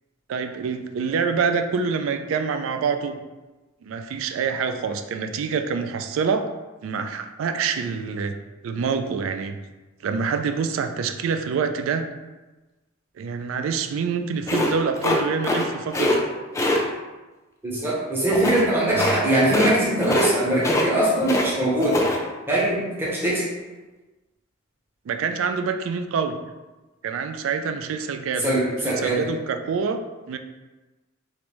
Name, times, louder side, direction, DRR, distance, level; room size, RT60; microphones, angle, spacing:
voice 1, 0.3-3.2 3.8-6.4 6.8-8.3 8.6-9.6 10.0-12.1 13.2-16.2 25.1-26.3 27.0-28.5 28.9-30.0 30.3-30.4, right 5 dB, 80° right, 7 dB, 0.3 m, -26 dB
sound 1, 14.5-15.7 15.9-16.2 16.5-16.8 18.3-18.6 19.0-19.2 19.4-19.7 20.0-20.3 20.6-21.5 21.8-22.2, left 1 dB, 15° left, 0.3 m, -23 dB
voice 2, 17.6-22.1 22.5-23.4 28.4-29.3, right 1 dB, 10° right, -7 dB, 0.8 m, -22 dB
3.2 x 2.5 x 3.0 m, 1.2 s
head